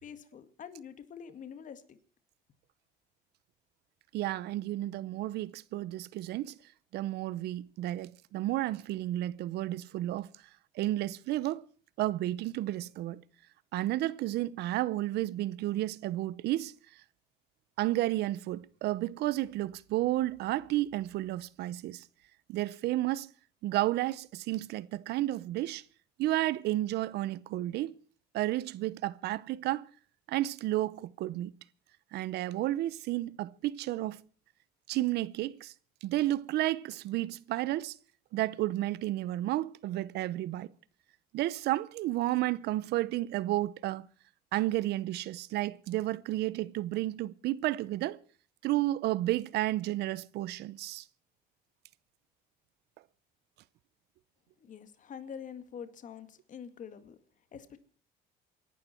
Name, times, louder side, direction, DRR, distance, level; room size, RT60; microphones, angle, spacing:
voice 1, 0.0-2.0 54.6-57.2 57.5-57.8, left 7 dB, 50° left, 2.0 m, -46 dB
voice 2, 4.1-6.6 6.9-10.3 10.8-11.6 12.0-13.2 13.7-16.7 17.8-22.0 22.5-23.3 23.6-25.8 26.2-28.0 28.3-29.9 30.3-31.5 32.1-34.2 34.9-35.7 36.0-38.0 38.3-40.7 41.3-44.1 44.5-48.2 48.6-51.0, right 15 dB, 75° right, 0.7 m, -32 dB
28.0 x 11.5 x 4.4 m
cardioid pair, 110°, 17 cm